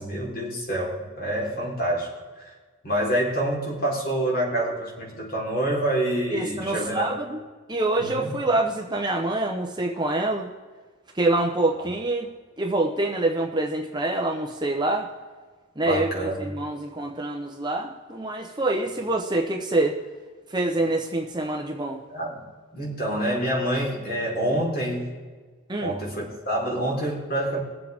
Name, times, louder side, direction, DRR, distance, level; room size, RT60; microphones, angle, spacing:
voice 1, 0.0-2.1 2.4-2.5 2.8-7.1 8.0-8.3 15.8-16.5 22.1-22.4 22.7-25.1 25.8-27.6, right 1 dB, 45° left, -3 dB, 4.0 m, -27 dB
voice 2, 6.3-7.4 7.7-10.5 11.1-12.3 12.6-15.1 15.8-19.9 20.5-22.0 25.7-25.9, right 2 dB, 20° right, 1 dB, 0.9 m, -26 dB
22.5 x 7.6 x 3.6 m, 1.4 s
head